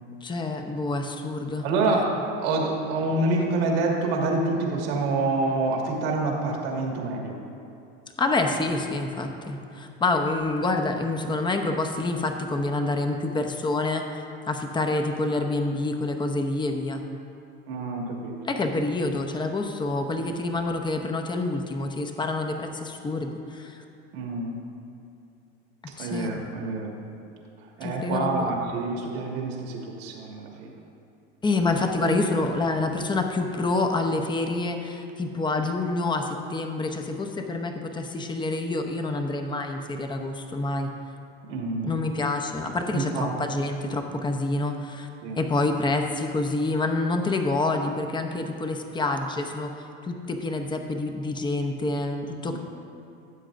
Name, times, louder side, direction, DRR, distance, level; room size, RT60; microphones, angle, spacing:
voice 1, 0.2-1.6 8.2-17.0 18.4-23.8 26.0-26.3 27.8-28.5 31.4-40.9 41.8-45.1 45.4-52.6, left 2 dB, 15° left, 5 dB, 0.8 m, -27 dB
voice 2, 1.6-7.4 17.7-18.4 24.1-24.6 26.0-27.0 27.8-30.7 41.5-41.9 42.9-43.3 45.2-45.4 52.5-52.6, right 3 dB, 80° right, -1 dB, 1.9 m, -27 dB
15.5 x 7.3 x 2.6 m, 2.7 s
supercardioid pair, 100°, 30 cm